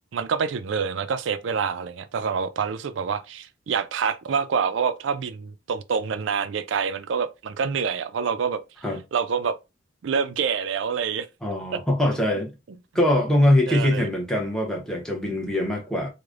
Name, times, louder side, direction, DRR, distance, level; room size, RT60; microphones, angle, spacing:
voice 1, 0.1-8.6 9.1-9.6 10.0-11.3 12.3-12.4 13.7-14.1, right 6 dB, 70° right, 0.4 m, -26 dB
voice 2, 11.4-12.5 12.9-16.1, left 1 dB, 5° left, 0.7 m, -22 dB
4.8 x 2.1 x 2.4 m
head